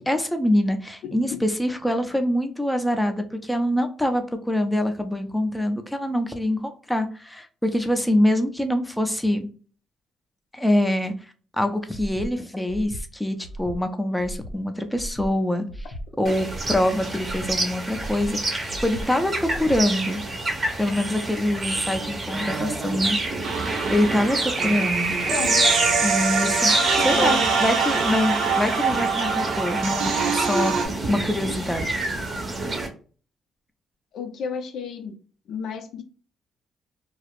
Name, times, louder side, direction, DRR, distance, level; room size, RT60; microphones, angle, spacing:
voice 1, 0.1-9.5 10.5-11.1 11.6-15.6 16.2-20.2 20.8-23.2 23.9-25.2 26.0-26.7 27.0-32.0, left 1 dB, 5° left, 7 dB, 0.5 m, -24 dB
voice 2, 1.0-1.4 25.3-25.6 26.9-27.5 34.1-35.1 35.5-36.0, left 6 dB, 70° left, 7 dB, 0.5 m, -32 dB
Breathing, 11.9-12.3 12.7-13.0 13.4-13.8 14.2-14.5 14.9-15.3 15.7-16.0 16.4-16.8 17.2-17.5 17.9-18.3 18.7-19.0 19.4-19.8, equal, 90° left, 0.9 m, -36 dB
sound 1, 16.2-32.9, right 2 dB, 30° right, 0.7 m, -28 dB
sound 2, 23.4-30.9, right 5 dB, 75° right, 0.6 m, -24 dB
2.3 x 2.0 x 2.9 m, 0.39 s
cardioid pair, 90°, 0 cm